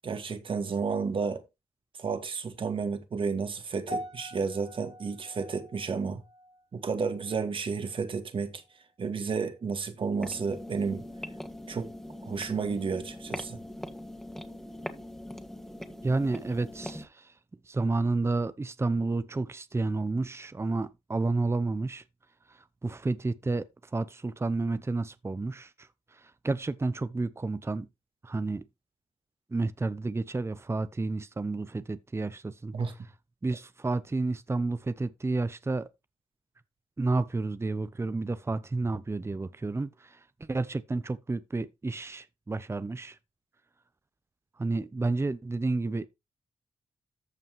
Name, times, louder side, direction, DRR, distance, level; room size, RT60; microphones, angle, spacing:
voice 1, 0.0-1.5 2.0-6.2 6.7-8.6 9.0-11.1 11.7-11.9 12.2-13.6 32.7-32.9, right 5 dB, 55° right, 2.1 m, -31 dB
sound 1, 3.9-8.3 8.5-8.9 9.6-9.7, equal, 70° right, 2.4 m, -44 dB
sound 2, 10.2-17.1, left 1 dB, 5° left, 2.1 m, -42 dB
voice 2, 16.0-17.3 17.7-22.0 22.5-27.9 28.2-28.6 29.5-32.7 33.4-35.9 37.0-43.2 44.6-46.1, right 3 dB, 25° right, 0.8 m, -31 dB
14.5 x 5.6 x 3.2 m
supercardioid pair, 45°, 11 cm